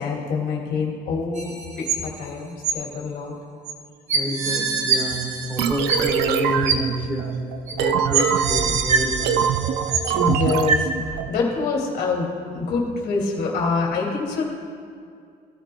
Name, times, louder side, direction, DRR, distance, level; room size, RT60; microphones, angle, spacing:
voice 1, 0.0-3.3 4.2-4.4 10.1-14.4, left 4 dB, 75° left, -2 dB, 2.5 m, -26 dB
sound 1, 1.4-2.3 2.6-2.7 3.7-3.8 4.1-6.3 6.7-6.8 7.7-7.8 8.1-10.3 10.7-10.8, right 5 dB, 45° right, 1.2 m, -24 dB
voice 2, 4.1-7.4 7.7-9.5, equal, 10° right, 0 dB, 1.8 m, -28 dB
sound 2, 5.6-11.3, right 8 dB, 80° right, 0.5 m, -24 dB
15.5 x 12.5 x 2.3 m, 2.2 s
cardioid pair, 110°, 17 cm